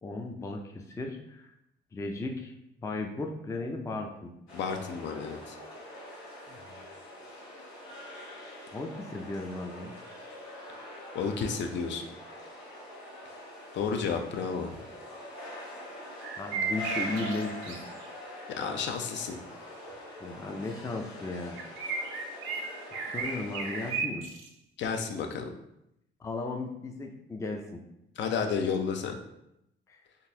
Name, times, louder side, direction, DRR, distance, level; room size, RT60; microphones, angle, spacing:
voice 1, 0.0-1.5 1.9-2.5 2.8-4.3 6.5-6.9 8.7-9.9 16.4-17.8 20.2-21.6 23.1-24.2 26.2-27.8 29.9-30.0, left 2 dB, 15° left, 3 dB, 0.4 m, -36 dB
sound 1, 4.5-23.9, left 1 dB, 85° left, 1.1 m, -44 dB
voice 2, 4.5-5.5 11.1-12.0 13.7-14.7 18.6-19.4 24.8-25.5 28.2-29.2, left 6 dB, 65° left, 4 dB, 0.5 m, -31 dB
sound 2, 16.2-18.1 21.6-24.5, right 4 dB, 85° right, 0.6 m, -34 dB
3.8 x 2.5 x 2.7 m, 0.82 s
cardioid pair, 90°, 20 cm